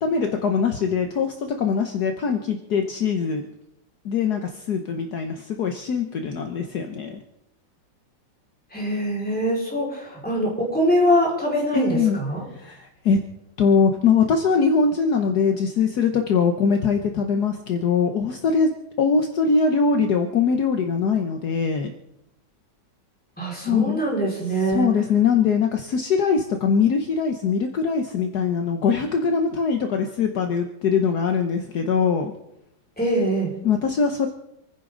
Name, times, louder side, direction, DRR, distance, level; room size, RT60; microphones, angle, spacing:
voice 1, 0.0-3.4 4.0-7.2 11.7-12.2 12.6-13.2 13.6-18.7 19.0-21.9 23.6-24.0 24.7-32.3 33.6-34.3, left 5 dB, 60° left, 5 dB, 1.5 m, -22 dB
voice 2, 8.7-12.4 23.4-24.9 33.0-33.6, equal, 5° left, -5 dB, 5.0 m, -23 dB
27.5 x 10.0 x 3.9 m, 0.81 s
omnidirectional pair, 2.0 m